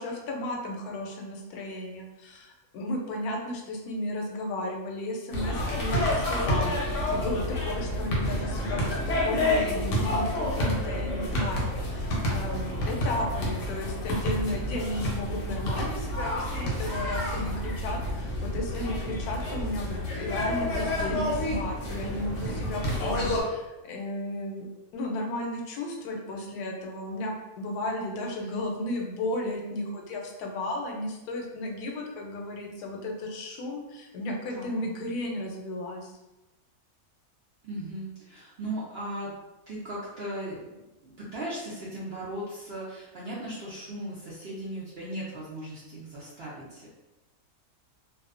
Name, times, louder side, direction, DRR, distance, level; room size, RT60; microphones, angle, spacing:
voice 1, 0.0-24.7 24.9-36.1, left 1 dB, 85° left, 1 dB, 1.1 m, -34 dB
sound 1, 5.3-23.4, left 1 dB, 65° left, 0.9 m, -29 dB
voice 2, 34.5-34.8 37.6-39.3 39.7-46.9, right 1 dB, 65° right, -7 dB, 0.6 m, -37 dB
2.6 x 2.2 x 2.4 m, 1.0 s
omnidirectional pair, 1.6 m